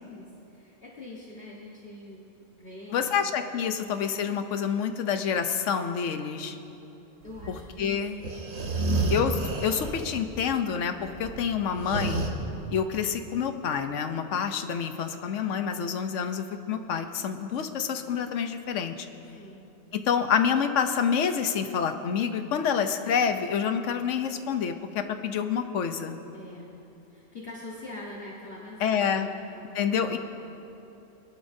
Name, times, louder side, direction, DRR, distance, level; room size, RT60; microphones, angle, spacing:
voice 1, 0.0-2.3 2.6-3.3 3.6-3.9 7.2-8.4 8.7-9.1 12.6-12.9 19.3-19.6 26.3-26.7 27.1-30.2, left 2 dB, 50° left, -5 dB, 1.5 m, -44 dB
voice 2, 2.9-6.6 7.5-8.1 9.1-12.3 12.7-19.1 19.9-26.2 28.8-29.3 29.7-30.2, left 7 dB, 70° left, 8 dB, 1.0 m, -28 dB
sound 1, 7.3-7.7 8.2-10.1 10.3-10.5 11.0-12.3, right 3 dB, 85° right, 1.6 m, -30 dB
21.5 x 11.5 x 2.7 m, 2.9 s
omnidirectional pair, 1.3 m